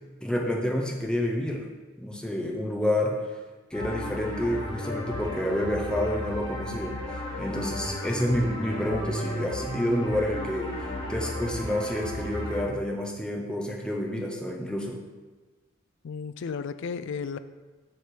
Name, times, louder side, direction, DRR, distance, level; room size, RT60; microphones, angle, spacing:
voice 1, 0.2-1.6 2.0-3.2 3.7-7.0 7.4-10.7 11.1-15.0, left 1 dB, 5° left, 0 dB, 0.6 m, -29 dB
sound 1, 3.7-12.6, left 1 dB, 25° left, 1.7 m, -34 dB
voice 2, 16.0-17.4, left 5 dB, 60° left, 12 dB, 0.4 m, -33 dB
7.0 x 3.3 x 6.0 m, 1.3 s
head